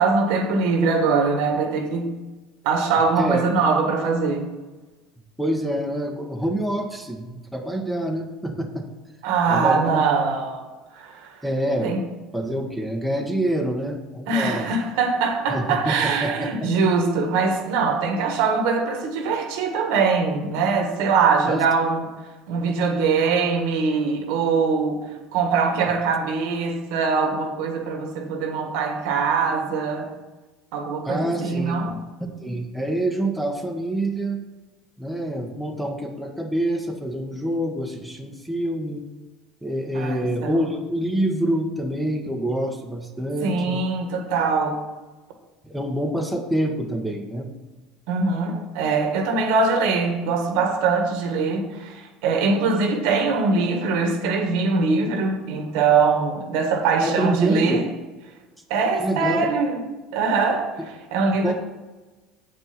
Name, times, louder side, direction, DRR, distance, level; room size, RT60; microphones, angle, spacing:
voice 1, 0.0-2.1 2.6-4.5 9.2-10.6 10.9-11.4 11.8-12.0 14.3-22.2 22.5-30.1 30.7-31.9 39.9-40.6 43.4-44.8 48.1-57.8 58.7-59.8 60.1-60.8 61.1-61.5, right 4 dB, 75° right, 4 dB, 1.5 m, -22 dB
voice 2, 5.4-8.9 9.5-10.0 11.4-11.9 12.3-14.7 15.5-16.7 21.5-21.6 31.0-32.0 32.4-34.4 35.0-39.0 39.6-43.8 45.6-47.5 57.0-57.8 59.0-59.5 61.4-61.5, right 1 dB, ahead, 1 dB, 1.3 m, -26 dB
7.8 x 5.3 x 5.9 m, 1.2 s
supercardioid pair, 85°, 0 cm